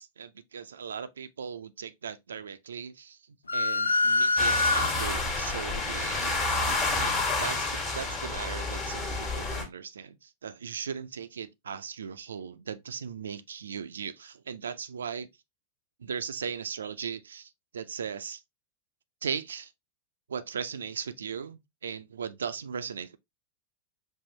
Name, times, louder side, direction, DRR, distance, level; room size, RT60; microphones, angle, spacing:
voice 1, 0.0-3.2 3.5-6.6 7.0-15.3 16.0-18.4 19.2-19.7 20.3-23.2, right 7 dB, 70° right, 0.4 m, -38 dB
sound 1, 3.5-5.3, left 3 dB, 80° left, 0.3 m, -25 dB
sound 2, 4.4-9.6, left 3 dB, 30° left, 1.4 m, -29 dB
5.5 x 2.5 x 2.8 m
figure-of-eight pair, 90°, 0 cm